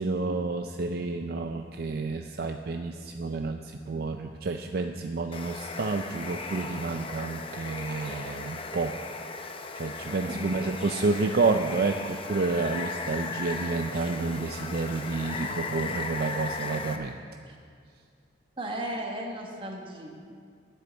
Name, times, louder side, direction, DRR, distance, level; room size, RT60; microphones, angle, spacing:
voice 1, 0.0-8.9 9.8-17.2, right 3 dB, 55° right, 5 dB, 0.4 m, -30 dB
Water, 5.3-17.0, left 4 dB, 30° left, 0.7 m, -37 dB
voice 2, 10.2-10.5 17.5-17.6 18.6-20.1, right 1 dB, 30° right, 0 dB, 1.5 m, -35 dB
9.9 x 7.9 x 7.9 m, 2.2 s
head